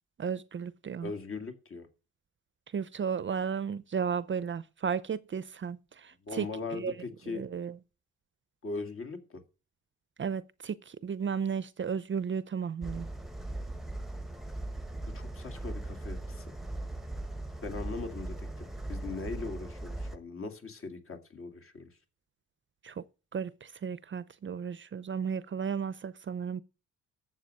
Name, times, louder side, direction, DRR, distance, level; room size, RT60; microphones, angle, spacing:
voice 1, 0.2-1.1 2.7-6.9 7.3-7.8 10.2-13.1 22.8-23.0 23.3-26.6, right 6 dB, 40° right, 0.6 m, -34 dB
voice 2, 1.0-1.9 6.2-7.5 8.6-9.4 15.1-16.5 17.6-21.9, left 4 dB, 45° left, 2.3 m, -40 dB
sound 1, 12.8-20.2, right 2 dB, ahead, 1.0 m, -39 dB
12.0 x 7.8 x 6.4 m
wide cardioid pair, 135°, 31 cm